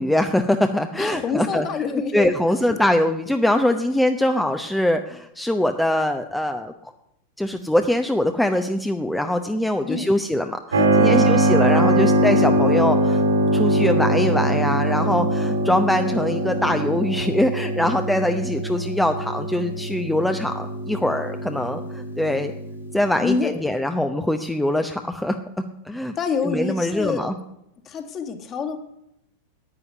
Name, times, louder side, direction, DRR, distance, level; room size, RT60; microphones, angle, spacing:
voice 1, 0.0-6.9 7.4-13.2 13.5-22.5 22.9-26.2 26.4-27.4, left 1 dB, 5° left, 6 dB, 0.8 m, -23 dB
voice 2, 1.0-2.8 9.8-10.2 11.1-11.4 23.2-23.5 26.2-27.3 27.9-28.8, left 5 dB, 30° left, 7 dB, 1.9 m, -27 dB
Keyboard (musical), 10.7-23.1, right 1 dB, 70° right, 3.1 m, -22 dB
11.0 x 9.6 x 9.5 m, 0.82 s
figure-of-eight pair, 90°, 0 cm